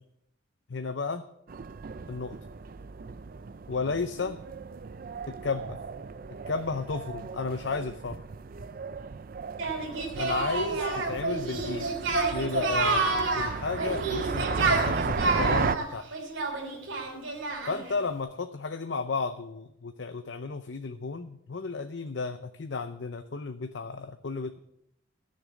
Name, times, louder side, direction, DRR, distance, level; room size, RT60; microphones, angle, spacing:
voice 1, 0.7-1.2 2.1-2.4 3.7-4.4 5.3-5.8 6.5-8.2 10.2-11.9 12.3-13.1 13.3-16.1 17.7-24.6, left 4 dB, 65° left, 8 dB, 0.6 m, -33 dB
sound 1, 1.5-15.8, right 5 dB, 45° right, 0.4 m, -35 dB
Singing, 9.6-17.9, right 3 dB, 80° right, 3.2 m, -29 dB
14.0 x 6.7 x 7.3 m, 0.77 s
head